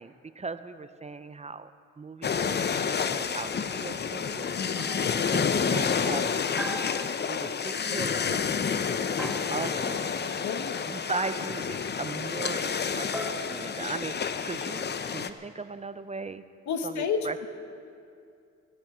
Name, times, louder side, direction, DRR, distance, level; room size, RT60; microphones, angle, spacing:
voice 1, 0.0-1.7 2.0-2.8 3.1-4.5 5.3-6.8 7.3-8.7 9.2-10.2 10.9-16.4 16.8-17.4, right 3 dB, 20° right, 12 dB, 0.6 m, -38 dB
sound 1, 2.2-15.3, left 6 dB, 35° left, 0.7 m, -29 dB
voice 2, 4.6-5.0 10.4-11.0 16.7-17.5, left 6 dB, 65° left, 8 dB, 1.3 m, -32 dB
sound 2, 4.8-5.3 6.6-7.5 9.2-9.9 11.1-11.7 13.1-14.4, equal, 5° right, 1.1 m, -39 dB
16.5 x 15.5 x 5.0 m, 2.5 s
cardioid pair, 90°, 30 cm